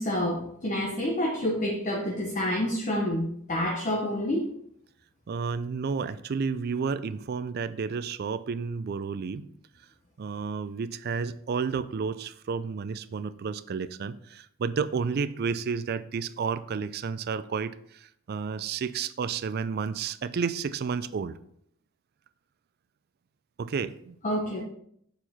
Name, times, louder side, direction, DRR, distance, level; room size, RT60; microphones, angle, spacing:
voice 1, 0.0-4.5 24.2-24.6, left 1 dB, 35° left, -1 dB, 0.9 m, -28 dB
voice 2, 5.3-9.5 10.2-21.4 23.6-24.2, right 5 dB, 50° right, 14 dB, 0.4 m, -31 dB
6.8 x 4.5 x 4.2 m, 0.69 s
head